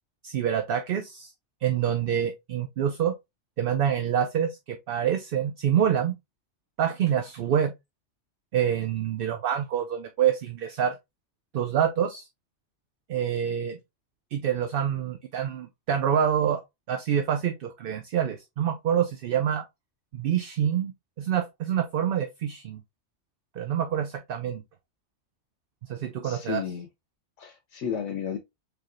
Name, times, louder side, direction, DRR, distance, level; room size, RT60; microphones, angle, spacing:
voice 1, 0.2-1.3 1.6-3.1 3.6-6.1 6.8-7.7 8.5-11.0 11.5-12.3 13.1-13.8 14.3-16.6 16.9-19.6 20.1-20.9 21.2-22.8 23.6-24.6 25.9-26.6, right 9 dB, 60° right, 0.6 m, -26 dB
voice 2, 26.2-26.9 27.4-28.4, left 7 dB, 85° left, 1.0 m, -32 dB
4.7 x 3.1 x 2.5 m
omnidirectional pair, 1.2 m